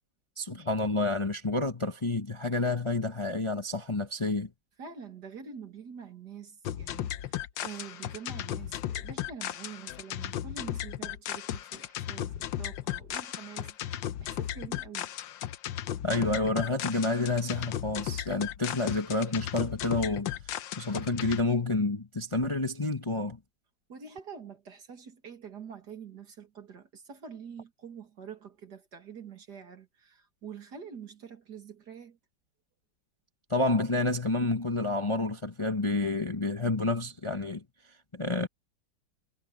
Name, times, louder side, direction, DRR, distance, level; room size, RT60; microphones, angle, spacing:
voice 1, 0.4-4.5 16.0-20.3 20.8-23.4 33.5-37.6 38.1-38.5, left 2 dB, 20° left, 1.0 m, -29 dB
voice 2, 4.8-15.2 23.9-32.2, right 7 dB, 60° right, 2.7 m, -46 dB
sound 1, 6.6-21.4, left 12 dB, 85° left, 1.5 m, -36 dB
omnidirectional pair, 2.0 m